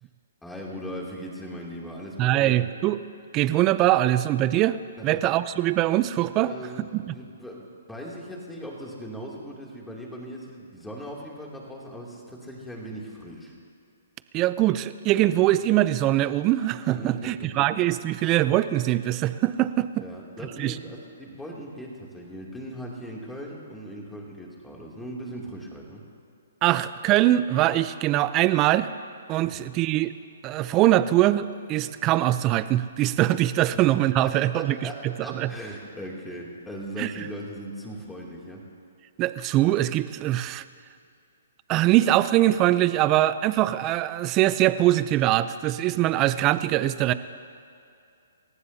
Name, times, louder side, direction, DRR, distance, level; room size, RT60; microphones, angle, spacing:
voice 1, 0.4-2.6 5.0-5.2 6.4-13.5 16.9-17.7 20.0-26.0 29.4-29.6 34.2-38.6, equal, 5° left, -3 dB, 2.7 m, -39 dB
voice 2, 2.2-3.0 3.3-4.8 5.0-6.5 6.9-7.1 14.3-19.9 20.6-20.8 26.6-28.9 29.3-30.1 30.4-34.8 35.3-35.5 37.0-37.1 39.2-40.6 41.7-47.1, right 14 dB, 25° right, 14 dB, 0.5 m, -22 dB
29.0 x 15.0 x 2.8 m, 2.5 s
hypercardioid pair, 145°, 0 cm